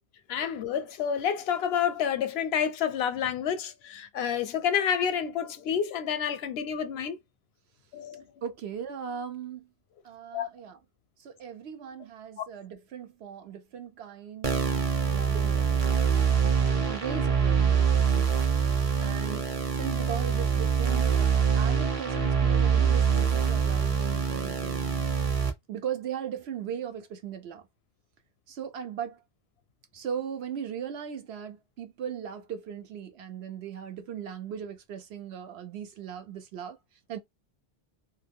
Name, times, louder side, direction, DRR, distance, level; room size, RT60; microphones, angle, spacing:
voice 1, 0.3-7.2 7.9-8.3 10.3-10.5 12.4-12.5, left 8 dB, 80° left, 0.8 m, -29 dB
voice 2, 8.4-9.7 10.0-10.8 11.2-18.5 19.0-19.4 19.7-25.0 25.7-27.6 28.5-29.2 29.9-36.8 37.1-37.2, right 8 dB, 90° right, 1.0 m, -38 dB
sound 1, 14.4-25.5, right 6 dB, 35° right, 0.8 m, -25 dB
2.5 x 2.3 x 3.3 m
omnidirectional pair, 1.0 m